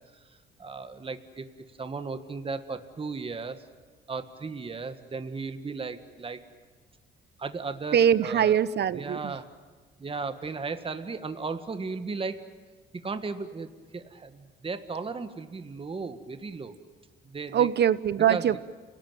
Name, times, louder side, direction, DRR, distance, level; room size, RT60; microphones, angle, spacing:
voice 1, 0.6-1.4 1.8-3.6 4.1-6.4 7.4-8.6 8.9-9.5 10.0-12.4 12.9-16.7 17.2-17.7 18.3-18.6, right 4 dB, 25° right, 9 dB, 1.6 m, -35 dB
voice 2, 7.9-9.4 17.5-18.6, right 9 dB, 60° right, 16 dB, 0.9 m, -23 dB
29.5 x 18.5 x 9.1 m, 1.5 s
cardioid pair, 90°, 20 cm